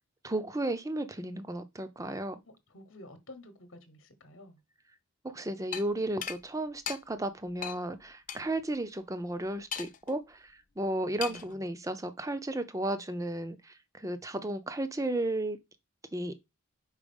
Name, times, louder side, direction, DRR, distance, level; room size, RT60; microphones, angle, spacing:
voice 1, 0.2-2.4 5.2-10.4 10.8-15.6 16.1-16.3, right 1 dB, 15° right, 0.6 m, -34 dB
voice 2, 2.7-4.6 11.3-11.5, left 1 dB, 60° left, 1.1 m, -50 dB
sound 1, 5.7-5.9 6.2-6.4 6.9-7.0 7.6-7.8 8.3-8.4 9.7-10.1 11.2-11.5, left 8 dB, 40° left, 0.5 m, -36 dB
4.9 x 4.7 x 5.3 m
head